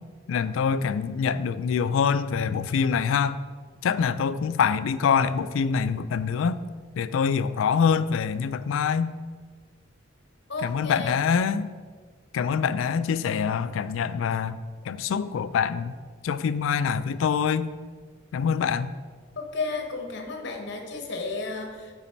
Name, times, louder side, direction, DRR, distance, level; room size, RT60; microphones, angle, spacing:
voice 1, 0.3-3.4 3.8-6.6 7.0-9.1 10.6-11.7 12.3-14.6 14.9-15.9 16.2-17.7 18.3-18.9, left 6 dB, 80° left, 14 dB, 0.3 m, -25 dB
voice 2, 10.5-11.1 19.4-21.9, left 3 dB, 60° left, 3 dB, 1.0 m, -33 dB
8.0 x 4.1 x 4.4 m, 1.5 s
head